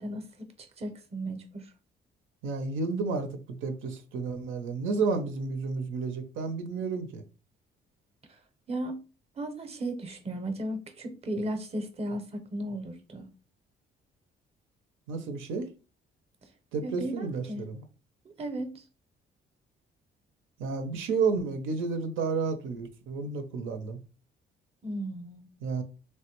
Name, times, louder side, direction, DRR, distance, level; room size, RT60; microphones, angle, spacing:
voice 1, 0.0-1.7 8.3-8.4 8.7-9.0 9.4-13.3 16.8-17.6 18.2-18.8 24.8-25.5, right 1 dB, 30° right, 0.6 m, -35 dB
voice 2, 2.4-7.2 15.1-15.7 16.7-17.8 20.6-24.0 25.6-25.8, right 4 dB, 90° right, 0.5 m, -31 dB
3.1 x 2.1 x 2.9 m
cardioid pair, 90°, 20 cm